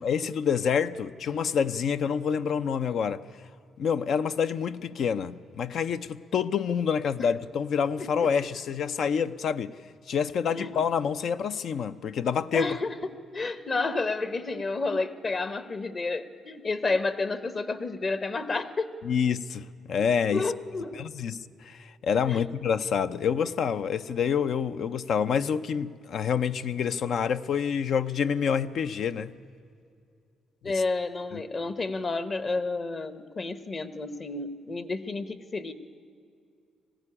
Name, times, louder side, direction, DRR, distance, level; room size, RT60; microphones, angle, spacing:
voice 1, 0.0-3.2 3.8-9.7 10.1-12.7 19.0-20.5 20.9-29.3 30.7-30.8 31.3-31.4, left 7 dB, 65° left, 0.6 m, -27 dB
voice 2, 8.0-8.3 10.5-10.8 12.5-12.9 13.3-18.9 20.3-21.0 22.3-22.5 30.6-35.7, left 3 dB, 40° left, 1.1 m, -30 dB
20.5 x 15.0 x 9.9 m
cardioid pair, 90°, 0 cm